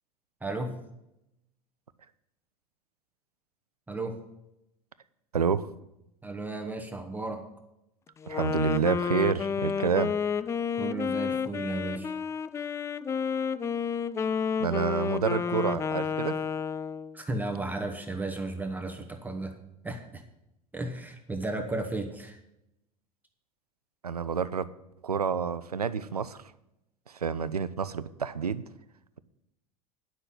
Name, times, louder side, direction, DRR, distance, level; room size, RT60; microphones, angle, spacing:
voice 1, 0.4-0.8 3.9-4.2 6.2-7.4 10.8-12.1 17.1-19.6 19.8-20.2 20.7-22.4, right 2 dB, 10° right, 3 dB, 1.3 m, -34 dB
voice 2, 5.3-5.7 8.3-10.1 14.6-16.4 24.0-24.7 25.0-26.4 27.2-28.6, right 6 dB, 80° right, 15 dB, 0.5 m, -28 dB
Wind instrument woodwind instrument, 8.2-17.2, left 6 dB, 15° left, 0.4 m, -30 dB
9.8 x 6.0 x 8.1 m, 0.86 s
figure-of-eight pair, 80°, 19 cm